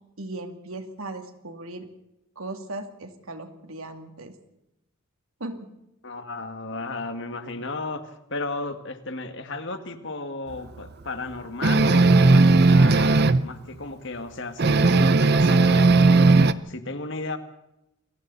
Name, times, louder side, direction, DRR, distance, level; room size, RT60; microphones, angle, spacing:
voice 1, 0.2-1.9 2.4-4.3 5.4-5.7, right 2 dB, 80° right, 5 dB, 2.7 m, -37 dB
voice 2, 6.0-17.4, left 3 dB, 60° left, 7 dB, 2.0 m, -34 dB
sound 1, 11.6-13.4 14.6-16.5, right 3 dB, 50° right, 0.7 m, -16 dB
28.5 x 22.5 x 4.2 m, 0.87 s
head